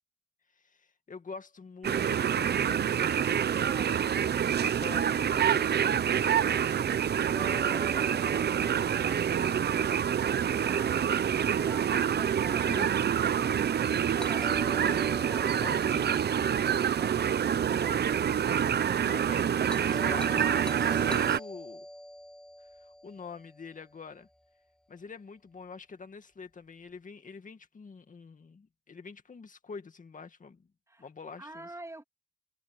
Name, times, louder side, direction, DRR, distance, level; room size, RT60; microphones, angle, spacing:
voice 1, 0.6-2.9 4.6-5.7 12.6-12.9 15.6-16.2 19.0-21.9 22.8-24.3 24.9-30.7 31.0-31.7, left 5 dB, 45° left, 2.1 m, -45 dB
sound 1, 1.8-21.4, right 8 dB, 65° right, 0.7 m, -27 dB
voice 2, 3.5-4.1 14.2-15.8 17.7-18.3 30.9-31.1 31.4-32.0, right 2 dB, 15° right, 2.4 m, -48 dB
Doorbell, 7.3-11.3 14.2-18.4 19.7-24.1, equal, 5° left, 4.1 m, -46 dB
wide cardioid pair, 110°, 18 cm